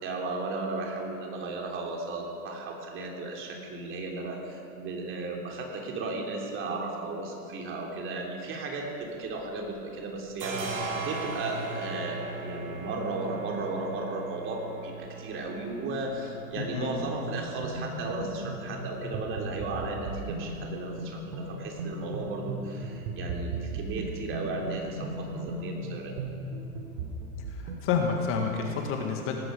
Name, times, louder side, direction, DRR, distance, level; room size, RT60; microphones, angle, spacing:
voice 1, 0.0-26.1, right 2 dB, 30° right, 0 dB, 3.2 m, -35 dB
sound 1, 8.9-9.8 10.0-27.5, right 3 dB, 75° right, 4.8 m, -42 dB
voice 2, 16.5-16.9 27.5-29.3, left 6 dB, 30° left, 3 dB, 1.8 m, -29 dB
sound 2, 16.6-27.9, right 2 dB, 50° right, 2.8 m, -37 dB
18.5 x 15.0 x 5.1 m, 2.8 s
figure-of-eight pair, 110°, 42 cm